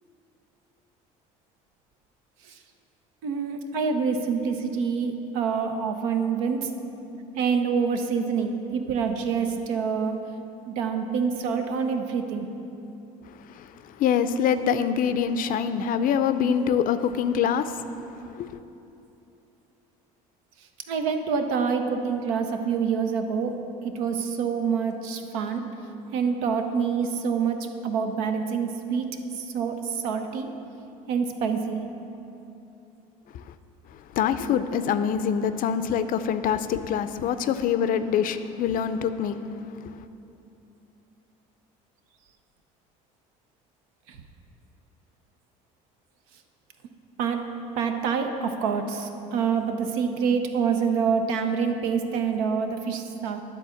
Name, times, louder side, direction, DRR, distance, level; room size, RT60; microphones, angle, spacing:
voice 1, 3.2-6.7 7.4-10.2 10.6-12.5 20.9-23.6 23.8-25.7 26.1-30.5 31.1-31.8 44.1-44.2 47.2-47.5 47.8-53.4, right 6 dB, 80° right, 6 dB, 0.7 m, -26 dB
voice 2, 13.3-18.5 33.3-33.4 33.9-39.7, left 8 dB, 55° left, 11 dB, 0.5 m, -25 dB
9.8 x 4.0 x 7.0 m, 2.9 s
supercardioid pair, 80°, 17 cm